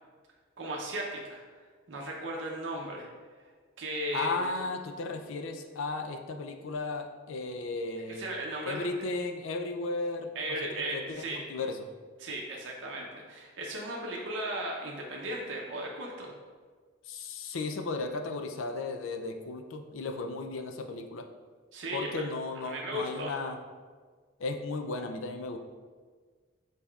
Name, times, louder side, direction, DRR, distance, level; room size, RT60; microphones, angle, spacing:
voice 1, 0.6-1.4 1.9-3.1 3.8-4.5 8.1-8.9 10.3-11.4 12.2-16.3 21.7-22.2 22.7-23.4, right 1 dB, 65° right, -2 dB, 0.6 m, -36 dB
voice 2, 4.1-8.2 8.7-10.3 10.7-11.8 17.1-21.3 21.9-23.6 24.4-25.6, left 3 dB, 75° left, 6 dB, 0.4 m, -35 dB
5.4 x 4.1 x 2.3 m, 1.5 s
head